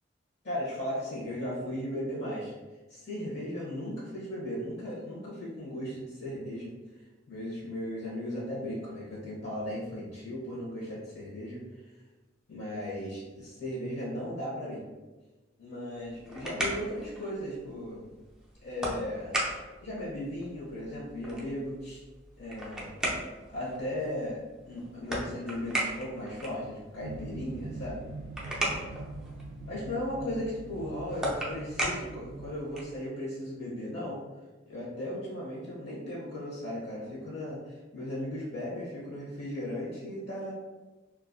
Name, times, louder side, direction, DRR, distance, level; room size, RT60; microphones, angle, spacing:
voice 1, 0.4-2.5 2.9-6.7 7.3-11.6 12.5-14.8 15.6-18.1 18.6-19.4 19.8-22.0 22.4-22.9 23.5-28.0 29.6-34.2 34.6-40.5, left 1 dB, 65° left, -7 dB, 0.8 m, -36 dB
sound 1, 15.9-33.0, right 1 dB, 5° right, 0.4 m, -38 dB
sound 2, 27.0-32.5, right 2 dB, 70° right, 0.3 m, -43 dB
2.5 x 2.4 x 2.5 m, 1.2 s
head